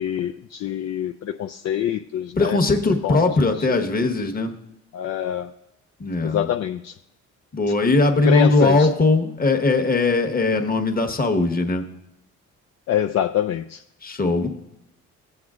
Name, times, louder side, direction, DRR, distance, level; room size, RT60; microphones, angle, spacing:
voice 1, 0.0-2.6 3.0-3.3 4.9-5.5 6.2-6.9 8.3-8.9 12.9-13.8, left 10 dB, 60° left, 5 dB, 0.5 m, -25 dB
voice 2, 2.4-4.5 6.0-6.5 7.5-11.8 14.0-14.5, left 3 dB, 30° left, 5 dB, 1.3 m, -20 dB
16.5 x 7.8 x 2.5 m, 0.85 s
cardioid pair, 90°, 30 cm